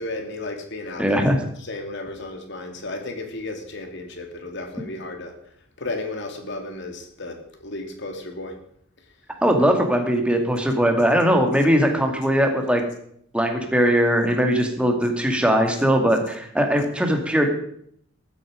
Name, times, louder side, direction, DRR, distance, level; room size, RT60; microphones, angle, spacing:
voice 1, 0.0-1.2 1.6-5.3 5.8-8.5, left 2 dB, 60° left, 5 dB, 2.8 m, -33 dB
voice 2, 1.0-1.4 9.4-12.8 13.3-17.5, equal, 5° right, 3 dB, 2.4 m, -20 dB
14.5 x 12.5 x 5.2 m, 0.66 s
head